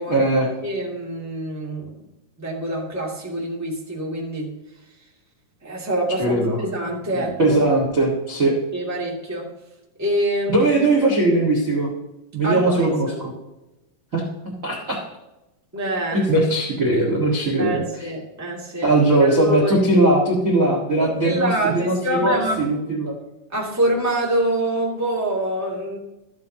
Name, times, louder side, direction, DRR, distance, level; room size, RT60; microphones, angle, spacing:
voice 1, 0.1-0.5 6.2-6.6 7.4-8.6 10.5-11.9 12.3-13.3 14.1-15.0 16.1-17.8 18.8-23.1, right 2 dB, 35° right, 0 dB, 1.6 m, -19 dB
voice 2, 0.6-2.0 2.4-4.5 5.6-7.6 8.7-9.5 10.0-10.9 12.4-13.2 15.7-16.2 17.6-18.9 19.2-19.8 21.0-22.7 23.5-26.0, right 1 dB, 5° right, -4 dB, 1.9 m, -25 dB
14.0 x 9.5 x 2.9 m, 0.99 s
omnidirectional pair, 3.8 m